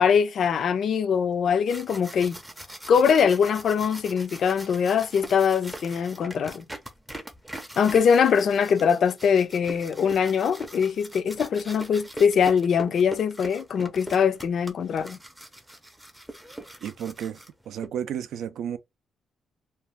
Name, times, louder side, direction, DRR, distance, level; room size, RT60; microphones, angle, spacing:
voice 1, 0.0-2.4 2.9-6.6 7.8-15.2, left 7 dB, 55° left, 0.4 m, -22 dB
sound 1, 1.4-17.9, right 1 dB, 5° right, 0.5 m, -42 dB
voice 2, 16.8-17.4 17.7-18.8, right 9 dB, 75° right, 0.4 m, -32 dB
2.5 x 2.3 x 3.2 m
cardioid pair, 140°, 0 cm